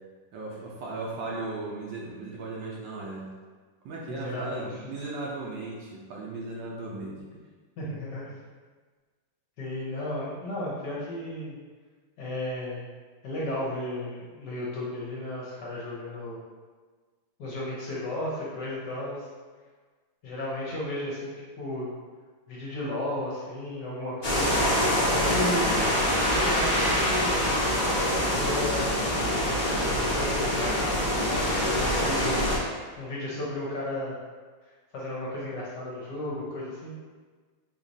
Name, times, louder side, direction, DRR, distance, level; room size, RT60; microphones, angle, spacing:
voice 1, 0.3-3.3 3.8-7.2, right 3 dB, 70° right, -4 dB, 1.2 m, -36 dB
voice 2, 4.1-4.9 7.8-8.4 9.6-11.5 12.2-12.9 13.2-16.4 17.4-19.3 20.2-21.9 22.5-25.8 26.3-27.7 28.3-28.9 30.1-32.7 33.0-34.2 34.6-36.9, left 1 dB, 65° left, -6 dB, 1.2 m, -34 dB
sound 1, 24.2-32.6, equal, 45° left, 0.5 m, -25 dB
4.9 x 3.0 x 2.7 m, 1.4 s
omnidirectional pair, 2.4 m